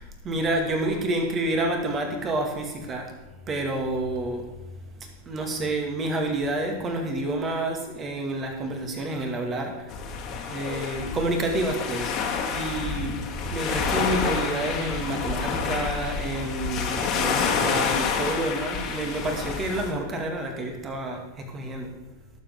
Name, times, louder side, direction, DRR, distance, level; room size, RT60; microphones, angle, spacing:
voice 1, 0.0-3.1 3.5-4.5 5.0-9.9 10.5-12.1 12.5-13.2 13.5-21.9, right 2 dB, 25° right, 3 dB, 2.2 m, -29 dB
sound 1, 9.9-19.9, left 5 dB, 35° left, 2.0 m, -28 dB
18.5 x 7.4 x 3.8 m, 1.1 s
figure-of-eight pair, 90°, 0 cm